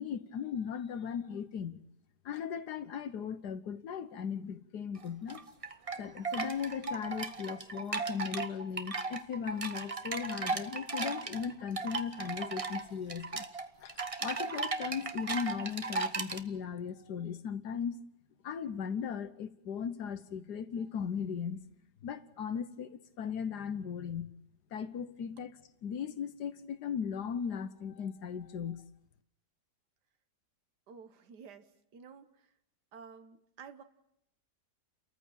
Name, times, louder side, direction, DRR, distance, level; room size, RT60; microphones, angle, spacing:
voice 1, 0.0-1.8 2.2-5.4 6.0-13.4 13.8-18.0 18.4-21.6 22.0-24.3 24.7-25.6 25.8-28.8, left 7 dB, 75° left, 1.6 m, -37 dB
sound 1, 5.0-16.4, right 4 dB, 25° right, 0.8 m, -37 dB
voice 2, 30.9-32.5 32.9-33.8, right 6 dB, 75° right, 1.8 m, -52 dB
30.0 x 14.5 x 7.2 m
omnidirectional pair, 1.8 m